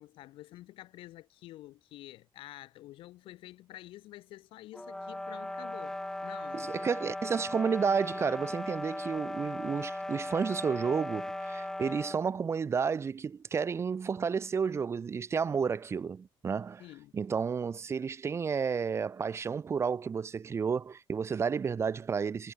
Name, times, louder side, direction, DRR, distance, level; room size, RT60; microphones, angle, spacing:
voice 1, 0.0-6.9 16.8-17.1, left 16 dB, 85° left, 5.4 m, -49 dB
sound 1, 4.7-12.2, left 1 dB, 5° left, 6.4 m, -38 dB
voice 2, 6.6-16.8 17.1-22.5, right 6 dB, 30° right, 2.2 m, -31 dB
cardioid pair, 140°, 9 cm